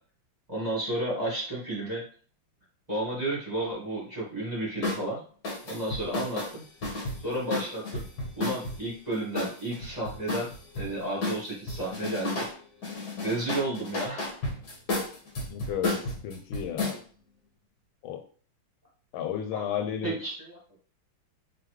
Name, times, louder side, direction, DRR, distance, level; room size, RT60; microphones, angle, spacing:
voice 1, 0.5-2.0 2.9-5.2 5.6-6.6 7.2-8.0 8.4-10.5 10.7-12.4 13.2-14.3 19.5-19.7 20.0-20.6, right 1 dB, 20° right, -6 dB, 1.6 m, -32 dB
sound 1, 4.8-5.0 5.4-8.8 9.4-10.9 11.2-12.5 12.8-17.0, left 2 dB, 55° left, 1.6 m, -32 dB
voice 2, 15.5-17.0 18.0-18.2 19.1-20.2, left 9 dB, 85° left, 7 dB, 1.4 m, -33 dB
4.0 x 3.2 x 3.1 m, 0.42 s
omnidirectional pair, 2.2 m